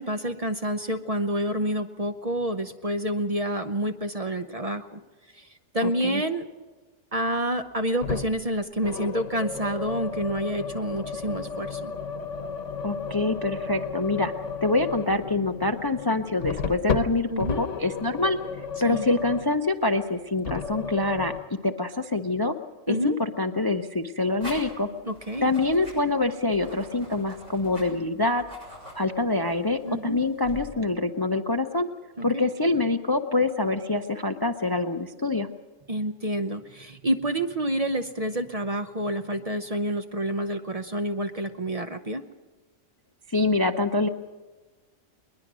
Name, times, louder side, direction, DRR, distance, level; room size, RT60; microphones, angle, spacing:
voice 1, 0.0-5.0 5.3-5.5 5.7-6.5 7.1-11.9 17.3-17.7 18.8-19.1 22.9-23.2 25.0-25.5 29.8-30.2 32.2-32.4 35.9-42.2, right 1 dB, 35° right, 7 dB, 0.8 m, -28 dB
voice 2, 5.8-6.2 12.8-14.3 14.6-18.4 18.8-21.3 21.6-22.5 22.9-24.9 25.4-28.4 28.9-31.9 32.2-35.5 43.3-44.1, left 2 dB, 25° left, 8 dB, 0.6 m, -25 dB
sound 1, 8.0-8.4 8.8-19.6 20.4-21.4, left 5 dB, 75° left, 1.4 m, -33 dB
sound 2, 24.4-30.7, equal, 70° right, 7.3 m, -45 dB
21.0 x 21.0 x 6.2 m, 1.3 s
omnidirectional pair, 1.3 m